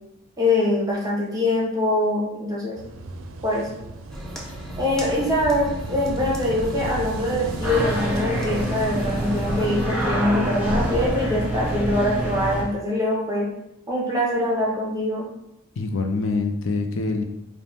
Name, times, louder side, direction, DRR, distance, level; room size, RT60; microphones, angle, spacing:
voice 1, 0.4-2.8 3.4-3.7 4.8-13.5 13.9-15.3, left 1 dB, 15° right, -3 dB, 0.9 m, -23 dB
Wind / Waves surf, 2.8-12.8, right 2 dB, 75° right, 0.4 m, -36 dB
sound 1, 4.1-9.9, equal, 5° left, 0.4 m, -36 dB
sound 2, 7.6-12.6, right 1 dB, 25° left, 1.4 m, -26 dB
voice 2, 15.8-17.2, left 3 dB, 65° left, 5 dB, 0.4 m, -25 dB
5.0 x 2.1 x 3.4 m, 0.83 s
head